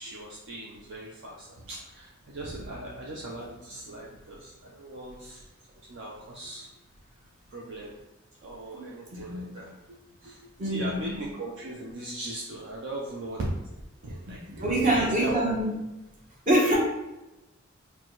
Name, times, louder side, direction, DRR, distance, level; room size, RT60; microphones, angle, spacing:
voice 1, 0.0-5.4 5.9-6.7 7.5-7.9 8.4-10.4 10.6-13.5 14.0-15.4, right 1 dB, 60° right, -3 dB, 0.5 m, -39 dB
voice 2, 8.7-9.5 10.6-11.3 14.3-15.8 16.5-16.8, right 1 dB, 40° right, -4 dB, 1.0 m, -26 dB
4.3 x 2.2 x 3.0 m, 0.97 s
head